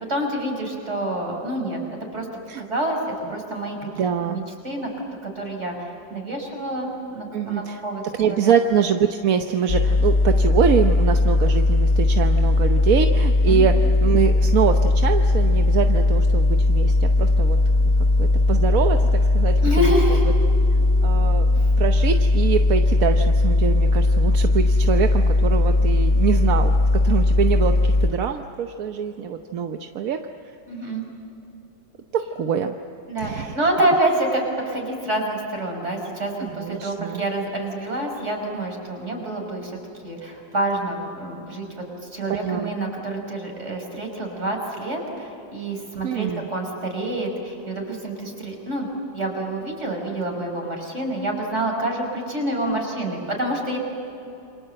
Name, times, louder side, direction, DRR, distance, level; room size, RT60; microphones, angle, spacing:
voice 1, 0.1-1.8 2.1-3.9 4.3-4.9 5.2-8.5 13.5-13.6 19.6-20.3 21.6-21.7 30.7-31.0 33.1-39.8 40.0-48.9 49.1-53.8, right 1 dB, 35° right, 1 dB, 5.6 m, -27 dB
voice 2, 4.0-4.5 7.3-7.8 8.2-17.6 18.2-19.9 21.0-21.5 21.8-30.2 32.1-32.7 33.2-33.6 36.4-37.2 42.4-42.7 46.0-46.5, right 7 dB, 55° right, 6 dB, 1.2 m, -24 dB
sound 1, 9.7-28.1, left 2 dB, 40° left, 0.6 m, -18 dB
28.5 x 25.0 x 7.7 m, 2.8 s
omnidirectional pair, 2.0 m